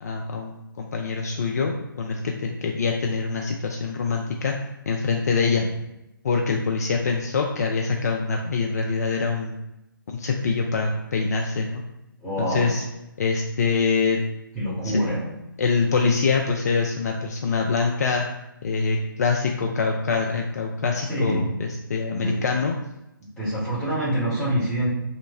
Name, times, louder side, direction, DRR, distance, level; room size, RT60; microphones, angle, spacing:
voice 1, 0.0-4.5 4.9-5.6 6.2-9.6 10.1-11.8 12.4-12.8 13.2-14.2 14.8-15.0 15.6-18.3 18.6-21.4 21.9-22.7, left 4 dB, 45° left, 1 dB, 0.5 m, -24 dB
voice 2, 12.2-12.8 14.5-15.3 21.0-21.5 22.1-22.4 23.2-24.9, equal, 5° left, -8 dB, 1.5 m, -26 dB
3.1 x 3.0 x 4.2 m, 0.90 s
figure-of-eight pair, 145°, 12 cm